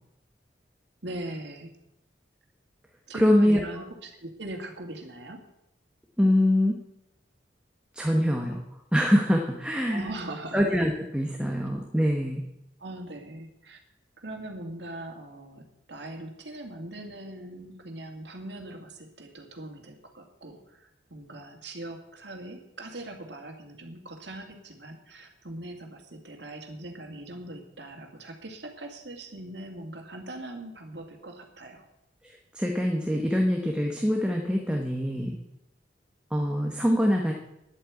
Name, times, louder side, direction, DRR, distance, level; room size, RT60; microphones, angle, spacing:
voice 1, 1.0-1.7 3.1-5.4 9.9-10.7 12.8-13.8 14.2-31.9, right 1 dB, 70° right, 3 dB, 2.4 m, -41 dB
voice 2, 3.2-3.6 6.2-6.8 7.9-8.6 8.9-10.1 10.5-12.4 32.2-35.4 36.3-37.3, equal, 5° right, 1 dB, 1.2 m, -24 dB
10.5 x 8.8 x 8.5 m, 0.84 s
head